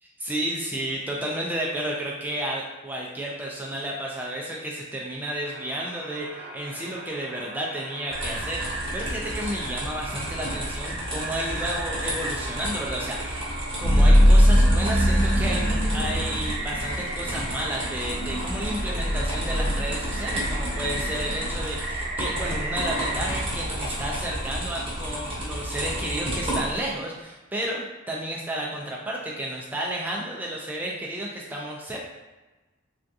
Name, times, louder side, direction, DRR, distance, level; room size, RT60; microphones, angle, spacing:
voice 1, 0.2-32.0, right 1 dB, 10° right, -3 dB, 0.3 m, -32 dB
sound 1, 5.4-23.5, right 2 dB, 55° right, 0.6 m, -37 dB
sound 2, 8.1-26.9, right 1 dB, 25° right, 0.8 m, -32 dB
sound 3, 13.8-21.6, equal, 60° left, 0.5 m, -22 dB
3.5 x 2.3 x 2.6 m, 1.2 s
head